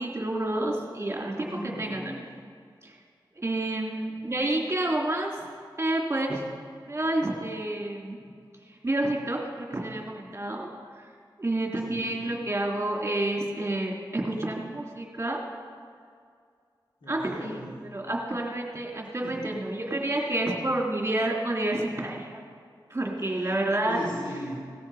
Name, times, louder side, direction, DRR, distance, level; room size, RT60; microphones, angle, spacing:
voice 1, 0.0-1.5 1.8-2.3 2.8-3.0 3.3-5.3 5.8-6.4 6.8-8.3 8.7-10.7 10.9-11.0 11.4-15.4 17.1-17.6 17.9-22.4 22.9-24.0, right 1 dB, 30° right, -1 dB, 3.0 m, -29 dB
voice 2, 1.4-2.0 11.8-12.3 17.0-17.8 19.0-19.4 23.2-23.5 23.8-24.7, equal, 85° left, -6 dB, 3.8 m, -38 dB
18.0 x 13.0 x 4.9 m, 2.2 s
cardioid pair, 55°, 8 cm